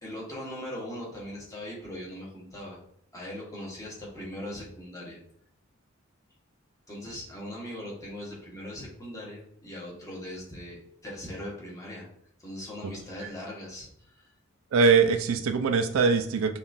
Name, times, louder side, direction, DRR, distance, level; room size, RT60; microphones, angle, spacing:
voice 1, 0.0-2.8 3.1-5.2 6.9-12.1 12.4-14.3, left 1 dB, 15° left, -5 dB, 1.1 m, -40 dB
voice 2, 14.7-16.6, right 5 dB, 70° right, 8 dB, 0.4 m, -22 dB
5.4 x 2.4 x 2.6 m, 0.69 s
head